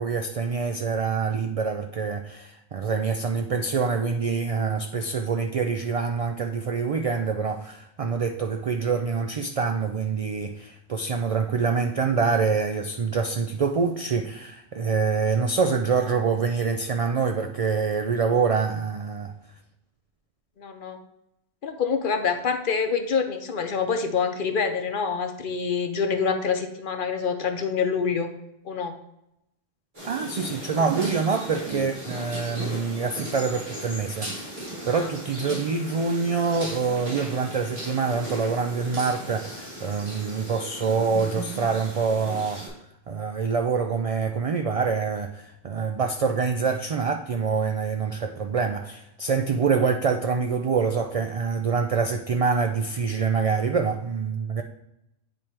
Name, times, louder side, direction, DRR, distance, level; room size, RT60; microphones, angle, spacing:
voice 1, 0.0-19.3 30.0-34.6 34.9-42.6 43.1-54.6, right 5 dB, 65° right, 6 dB, 0.3 m, -25 dB
voice 2, 20.6-21.0 21.6-28.3 28.6-28.9 34.9-35.1, left 5 dB, 55° left, 6 dB, 0.8 m, -26 dB
sound 1, 29.9-42.7, right 1 dB, 50° right, 3.1 m, -37 dB
8.9 x 3.2 x 4.3 m, 0.83 s
omnidirectional pair, 1.1 m